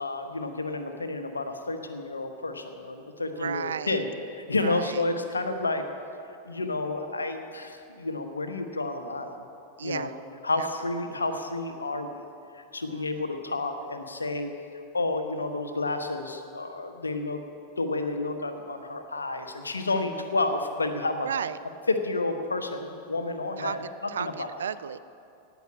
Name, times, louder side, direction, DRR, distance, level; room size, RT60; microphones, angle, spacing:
voice 1, 0.0-4.1 4.5-5.8 6.4-9.4 9.8-10.1 10.4-12.2 12.5-14.5 14.9-17.4 17.8-21.3 21.9-23.8 24.2-24.5, left 2 dB, 75° left, 7 dB, 1.1 m, -30 dB
voice 2, 3.3-4.0 4.6-5.0 9.8-10.1 10.6-10.9 12.9-13.3 20.0-20.1 21.2-21.6 23.6-23.8 24.1-25.0, right 8 dB, 65° right, 14 dB, 0.4 m, -34 dB
17.5 x 6.1 x 8.5 m, 2.6 s
figure-of-eight pair, 90°, 0 cm